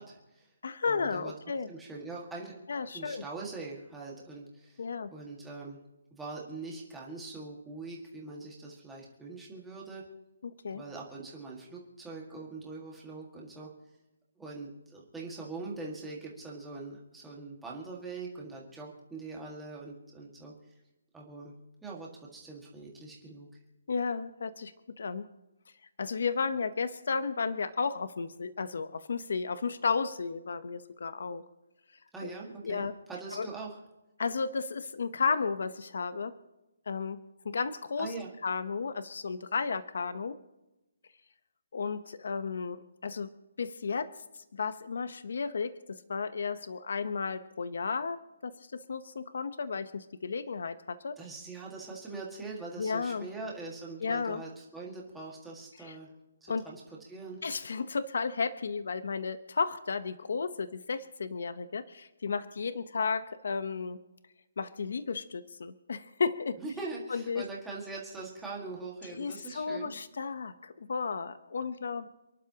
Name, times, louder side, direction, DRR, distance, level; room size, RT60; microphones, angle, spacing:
voice 1, 0.0-0.5 0.9-1.3 1.7-2.6 2.9-5.8 6.1-10.0 10.7-13.7 14.4-20.5 21.1-21.5 21.8-23.5 32.1-33.8 38.0-38.3 51.2-56.1 56.4-56.8 57.1-57.4 66.6-69.9, right 3 dB, 5° right, -4 dB, 1.8 m, -42 dB
voice 2, 0.6-1.7 2.7-3.2 4.8-5.1 10.4-10.8 23.9-24.7 25.0-25.3 26.0-31.4 32.2-32.3 32.6-32.9 33.3-33.5 34.2-36.3 36.9-38.1 38.4-40.3 41.7-43.3 43.6-44.1 44.5-51.2 52.8-53.3 54.0-54.4 55.8-56.0 56.5-56.7 57.4-64.0 64.6-66.6 67.1-67.4 69.1-72.1, left 5 dB, 50° left, 13 dB, 0.8 m, -33 dB
29.0 x 11.5 x 2.9 m, 0.99 s
hypercardioid pair, 180°, 0 cm